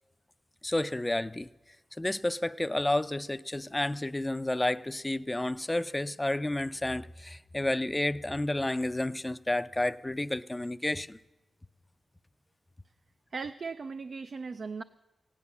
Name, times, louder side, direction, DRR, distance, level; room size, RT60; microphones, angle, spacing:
voice 1, 0.6-1.5 2.0-11.2, left 1 dB, 15° left, 0.4 m, -31 dB
voice 2, 13.3-14.8, right 4 dB, 60° right, 0.4 m, -38 dB
16.0 x 9.7 x 7.1 m
cardioid pair, 75°, 0 cm